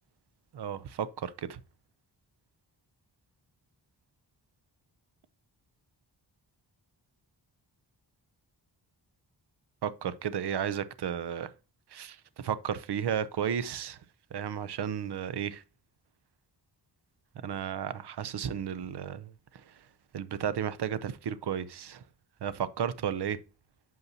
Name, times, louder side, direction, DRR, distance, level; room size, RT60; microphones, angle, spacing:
voice 1, 0.5-1.6 9.8-11.5 11.9-14.0 14.3-15.6 17.4-19.3 20.1-22.0 22.4-23.4, right 8 dB, 70° right, 0.7 m, -33 dB
8.1 x 5.5 x 2.7 m
wide cardioid pair, 115°, 42 cm